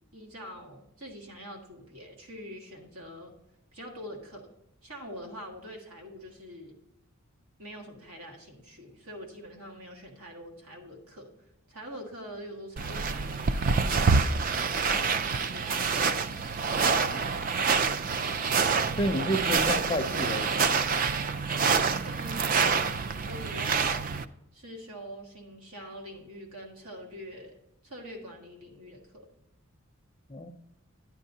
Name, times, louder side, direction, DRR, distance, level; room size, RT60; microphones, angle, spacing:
voice 1, 0.1-3.3 3.7-4.5 4.8-6.8 7.6-11.3 11.7-16.1 21.7-24.1 24.5-27.6 27.8-29.3, equal, 80° right, 1.8 m, -44 dB
sound 1, 12.8-24.2, right 5 dB, 40° right, 0.3 m, -27 dB
voice 2, 19.0-20.6 30.3-30.5, equal, 25° left, 0.5 m, -30 dB
11.0 x 9.3 x 2.7 m
head